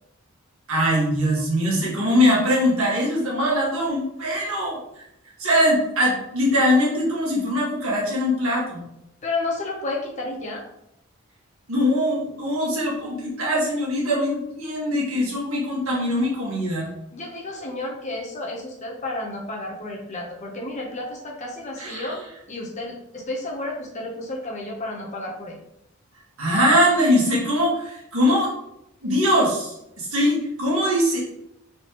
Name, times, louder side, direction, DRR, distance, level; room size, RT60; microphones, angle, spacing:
voice 1, 0.7-4.8 5.4-8.8 11.7-16.9 21.8-22.3 26.4-28.5 29.0-31.2, equal, 80° right, -4 dB, 1.7 m, -22 dB
voice 2, 9.2-10.6 17.1-22.2 22.5-25.6, left 2 dB, 35° left, -1 dB, 0.9 m, -31 dB
4.2 x 3.8 x 3.0 m, 0.81 s
head